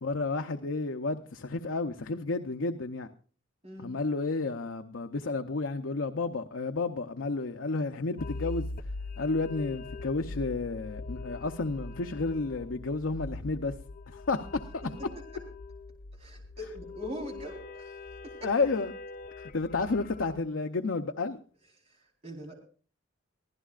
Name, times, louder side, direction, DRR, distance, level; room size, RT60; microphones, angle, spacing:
voice 1, 0.0-3.1 3.8-8.7 9.2-13.7 14.1-14.4 14.7-14.8 18.4-18.9 19.4-21.4, left 3 dB, 80° left, 5 dB, 0.7 m, -31 dB
sound 1, 8.2-20.4, left 3 dB, 50° left, 0.7 m, -42 dB
voice 2, 16.2-17.9 18.2-18.5 21.9-22.6, equal, 35° right, 0 dB, 4.1 m, -42 dB
24.0 x 15.5 x 2.5 m, 0.40 s
head